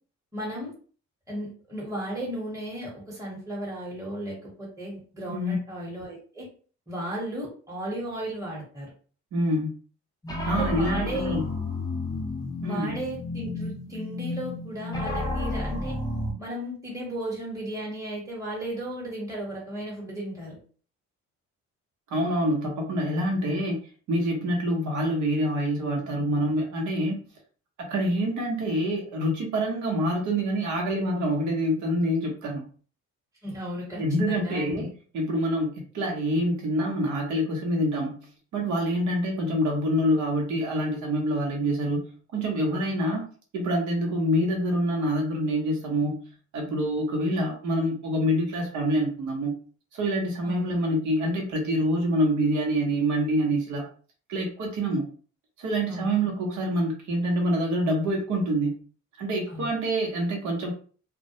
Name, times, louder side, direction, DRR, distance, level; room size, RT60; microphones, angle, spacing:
voice 1, 0.3-0.7 1.3-6.5 6.9-8.9 10.5-11.4 12.6-16.0 16.4-20.6 33.4-34.9 50.4-50.7 55.9-56.1 59.5-59.7, right 1 dB, 10° right, -4 dB, 1.0 m, -35 dB
voice 2, 9.3-9.7 10.4-11.4 12.6-13.0 22.1-23.8 24.1-27.2 27.8-32.6 34.0-34.9 35.1-43.3 43.5-49.5 49.9-53.9 54.3-55.1 55.6-58.7 59.2-60.7, equal, 75° right, 0 dB, 0.8 m, -26 dB
sound 1, 10.2-16.3, left 2 dB, 10° left, 0.6 m, -31 dB
2.2 x 2.1 x 2.7 m, 0.41 s
cardioid pair, 90°, 30 cm